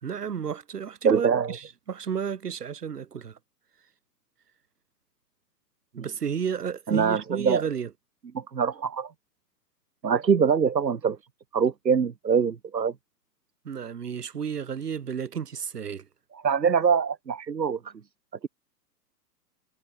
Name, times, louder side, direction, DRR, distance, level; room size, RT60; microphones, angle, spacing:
voice 1, 0.0-3.4 6.0-7.9 13.6-16.1, right 7 dB, 65° right, 5.8 m, -32 dB
voice 2, 1.0-1.5 6.0-6.1 6.9-7.6 8.3-9.1 10.0-11.2 11.5-12.9 16.4-17.8, right 6 dB, 85° right, 1.1 m, -23 dB
figure-of-eight pair, 110°, 50 cm